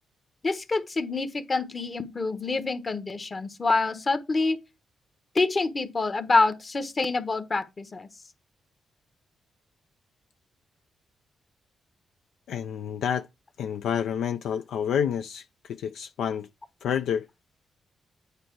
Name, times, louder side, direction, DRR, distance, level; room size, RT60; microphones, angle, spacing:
voice 1, 0.4-4.6 5.3-8.1, left 3 dB, 40° left, 1.2 m, -26 dB
voice 2, 12.5-13.3 13.6-16.5 16.8-17.2, left 8 dB, 80° left, 0.3 m, -29 dB
8.9 x 4.6 x 4.6 m
supercardioid pair, 55°, 0 cm